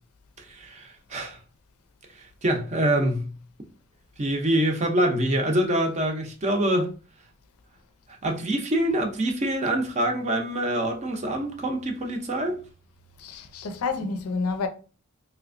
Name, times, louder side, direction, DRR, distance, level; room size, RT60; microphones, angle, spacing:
voice 1, 0.6-1.4 2.4-3.3 4.2-6.9 8.2-12.6, right 1 dB, 30° right, 0.5 m, -25 dB
voice 2, 13.2-14.7, left 4 dB, 75° left, 0.5 m, -29 dB
3.3 x 2.8 x 2.5 m
head